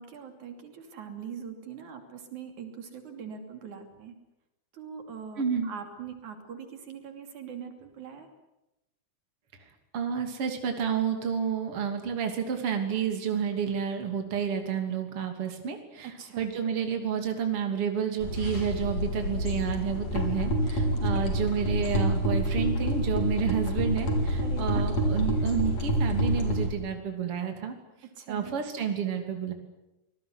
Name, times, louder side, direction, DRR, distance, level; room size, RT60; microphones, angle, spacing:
voice 1, 0.0-4.1 4.7-8.3 16.2-16.5 24.4-24.9 28.1-28.5, right 7 dB, 80° right, 6 dB, 4.3 m, -42 dB
voice 2, 5.4-5.7 9.9-27.8 28.3-29.5, right 7 dB, 50° right, 5 dB, 3.7 m, -30 dB
sound 1, 18.2-26.7, equal, 65° left, 5.2 m, -27 dB
25.5 x 19.5 x 9.7 m, 0.92 s
omnidirectional pair, 3.4 m